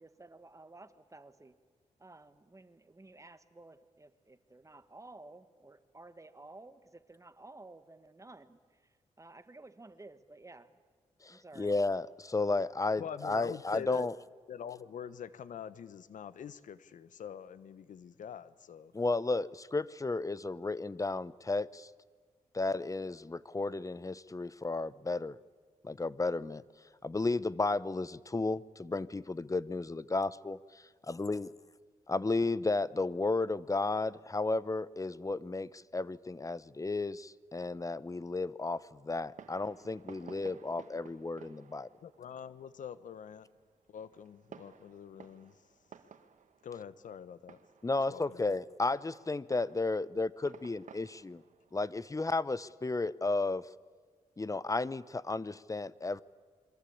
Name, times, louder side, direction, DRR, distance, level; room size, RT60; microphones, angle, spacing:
voice 1, 0.0-1.5 2.0-10.7 11.3-11.8, right 2 dB, 25° right, 11 dB, 1.6 m, -54 dB
voice 2, 11.2-14.1 18.9-21.9 22.5-25.4 25.8-26.6 27.0-30.6 31.1-31.5 32.1-41.9 47.8-51.4 51.7-53.6 54.4-56.2, left 3 dB, 25° left, 19 dB, 0.8 m, -33 dB
voice 3, 13.0-14.1 14.5-18.9 42.0-43.5 43.9-45.6 46.6-47.6 48.1-48.4, left 8 dB, 75° left, 16 dB, 1.1 m, -45 dB
Fireworks, 39.1-53.3, right 7 dB, 70° right, 1.6 m, -57 dB
28.0 x 23.0 x 8.6 m, 1.5 s
cardioid pair, 60°, 13 cm